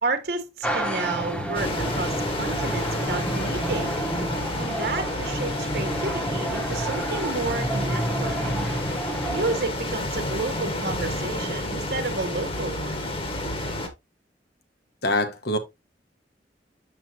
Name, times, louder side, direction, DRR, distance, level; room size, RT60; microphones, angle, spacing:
voice 1, 0.0-4.0 4.6-8.4 9.3-13.0, right 3 dB, 60° right, 1.2 m, -31 dB
sound 1, 0.6-9.6, right 1 dB, 5° left, 1.1 m, -30 dB
sound 2, 1.5-13.9, left 1 dB, 30° left, 1.5 m, -30 dB
voice 2, 15.0-15.6, left 1 dB, 65° left, 1.4 m, -24 dB
7.8 x 5.7 x 2.8 m
head